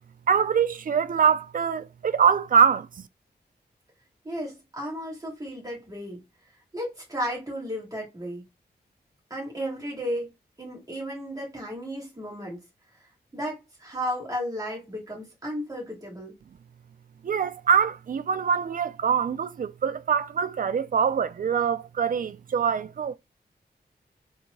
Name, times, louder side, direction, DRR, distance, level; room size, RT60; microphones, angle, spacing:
voice 1, 0.3-2.9 17.2-23.2, right 7 dB, 50° right, 0.4 m, -24 dB
voice 2, 4.2-6.2 6.7-8.4 9.3-10.3 10.6-12.6 13.3-16.3, equal, 20° right, 2.8 m, -34 dB
4.7 x 3.5 x 2.6 m
wide cardioid pair, 125°, 18 cm